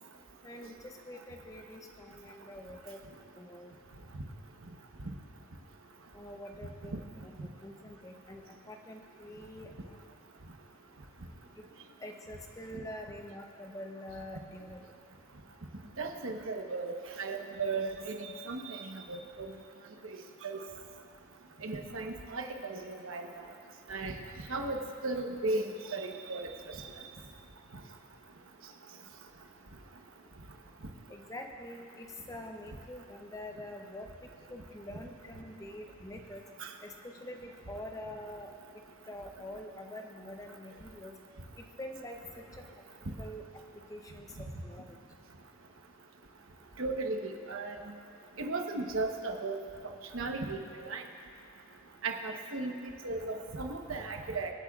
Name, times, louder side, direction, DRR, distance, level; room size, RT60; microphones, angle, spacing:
voice 1, 0.4-3.0 3.4-3.7 6.1-7.0 7.2-10.0 11.6-11.7 12.0-14.8 31.1-34.1 34.5-36.4 36.8-38.5 39.1-41.1 41.6-42.4 43.2-43.4 43.9-45.0, left 1 dB, 15° left, 3 dB, 0.6 m, -45 dB
voice 2, 16.0-19.2 20.4-20.6 21.6-23.3 23.9-24.1 24.5-25.6 25.9-26.5 46.8-47.8 48.4-49.6 50.1-51.0 52.0-52.7 53.0-54.5, right 3 dB, 75° right, 3 dB, 1.0 m, -35 dB
25.5 x 8.5 x 2.4 m, 2.5 s
head